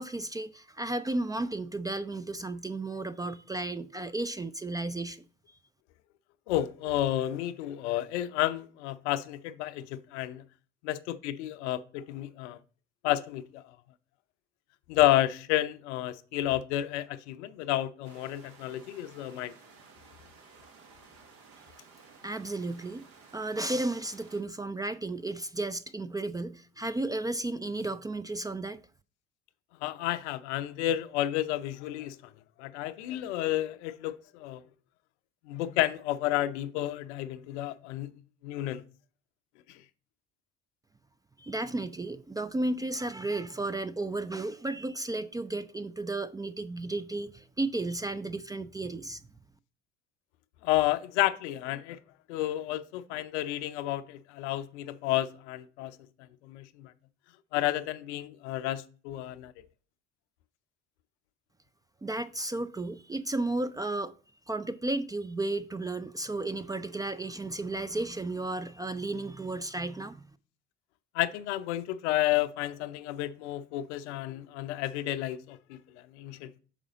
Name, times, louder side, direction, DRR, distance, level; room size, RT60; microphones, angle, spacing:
voice 1, 0.0-5.2 22.2-23.0 23.3-28.8 41.4-49.2 62.0-64.1 64.5-70.2, right 2 dB, 10° right, 0.3 m, -33 dB
voice 2, 6.5-10.4 10.8-12.6 13.0-13.6 14.9-19.5 29.8-32.2 32.6-34.6 35.5-38.1 38.4-38.8 39.7-39.8 50.6-52.0 52.3-56.0 56.4-56.9 57.5-59.5 71.1-75.8 76.1-76.5, left 14 dB, 75° left, 0.5 m, -31 dB
sound 1, 18.0-24.4, right 4 dB, 65° right, 1.5 m, -55 dB
6.2 x 5.0 x 3.8 m
hypercardioid pair, 60°, 35 cm